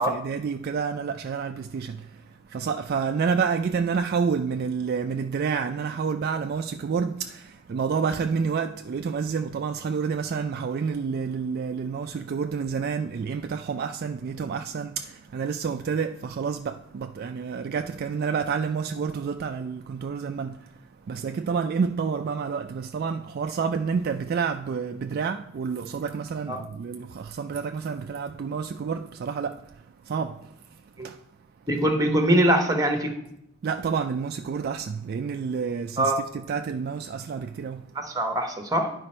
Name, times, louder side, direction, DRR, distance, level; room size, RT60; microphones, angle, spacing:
voice 1, 0.0-31.7 33.6-38.0, right 6 dB, 45° right, 0.3 m, -29 dB
voice 2, 31.7-33.1 36.0-36.2 38.0-38.9, right 1 dB, 15° right, 1.0 m, -22 dB
9.8 x 5.1 x 4.3 m
head